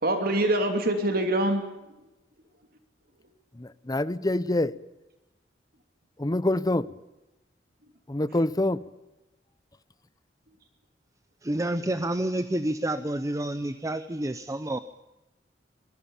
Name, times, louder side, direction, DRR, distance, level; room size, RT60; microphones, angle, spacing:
voice 1, 0.0-1.6, right 1 dB, 55° right, 3.0 m, -24 dB
voice 2, 3.5-4.8 6.2-6.9 8.1-8.8, left 1 dB, 20° left, 0.7 m, -26 dB
voice 3, 11.4-14.8, right 1 dB, 20° right, 0.7 m, -29 dB
25.0 x 20.0 x 7.2 m
head